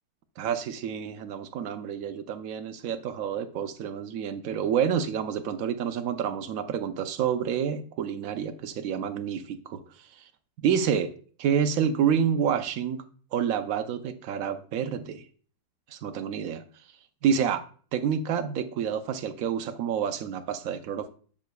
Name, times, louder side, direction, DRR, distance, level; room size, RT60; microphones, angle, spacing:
voice 1, 0.4-10.2 10.6-11.1 11.4-13.0 13.3-15.2 15.9-16.6 17.2-17.6 17.9-21.1, right 8 dB, 80° right, 8 dB, 0.7 m, -28 dB
7.3 x 6.4 x 2.3 m, 0.42 s
omnidirectional pair, 2.1 m